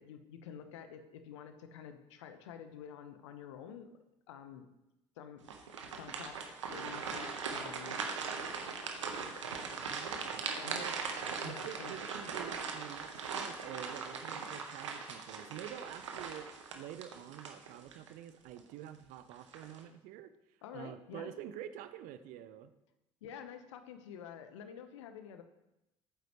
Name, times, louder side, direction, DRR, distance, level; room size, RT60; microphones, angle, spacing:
voice 1, 0.0-3.9 4.3-4.6 5.2-5.5 5.9-6.4 6.6-8.0 10.6-10.8 11.4-11.9 20.6-21.3 23.2-25.4, left 8 dB, 75° left, 9 dB, 1.1 m, -49 dB
sound 1, 5.4-18.1 18.6-18.7 19.3-19.8, right 5 dB, 80° right, 1.2 m, -40 dB
voice 2, 9.8-11.0 11.4-20.3 20.7-22.7, right 11 dB, 60° right, 12 dB, 0.9 m, -47 dB
21.0 x 9.3 x 3.2 m, 0.92 s
figure-of-eight pair, 55°, 15 cm